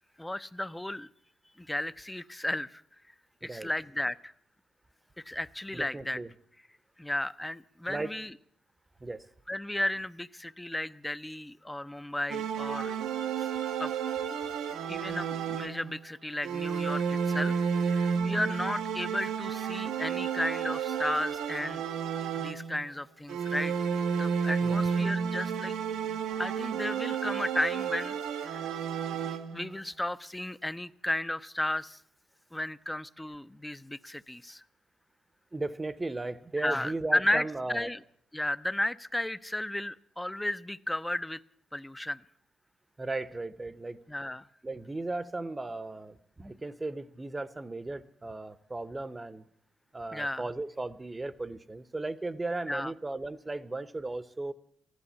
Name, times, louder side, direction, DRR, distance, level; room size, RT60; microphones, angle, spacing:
voice 1, 0.2-1.1 1.6-2.8 3.4-4.3 5.2-6.2 7.0-8.3 9.5-12.9 13.4-13.5 13.8-13.9 14.9-21.8 22.4-23.8 24.2-25.8 26.1-28.7 29.2-32.0 32.5-34.6 36.6-38.0 38.3-41.4 41.7-42.2 44.1-44.5 50.1-50.4 52.7-52.9, left 1 dB, 10° left, 15 dB, 0.5 m, -34 dB
voice 2, 5.7-6.3 7.9-8.1 9.0-9.3 24.6-24.8 35.5-37.9 43.0-44.0 44.6-49.5 49.9-54.5, right 2 dB, 20° right, 17 dB, 0.8 m, -36 dB
sound 1, 12.3-16.0 16.4-22.9 23.3-29.7, right 7 dB, 85° right, 0.9 m, -31 dB
15.0 x 11.5 x 8.5 m, 0.66 s
cardioid pair, 75°, 0 cm